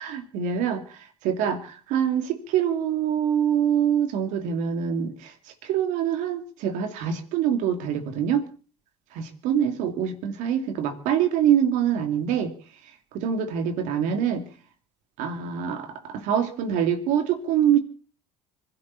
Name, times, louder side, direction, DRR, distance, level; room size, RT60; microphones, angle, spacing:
voice 1, 0.0-5.3 5.6-8.5 9.1-12.5 13.1-14.5 15.2-17.8, right 9 dB, 70° right, 8 dB, 2.7 m, -25 dB
25.5 x 12.5 x 4.2 m, 0.39 s
hypercardioid pair, 75°, 13 cm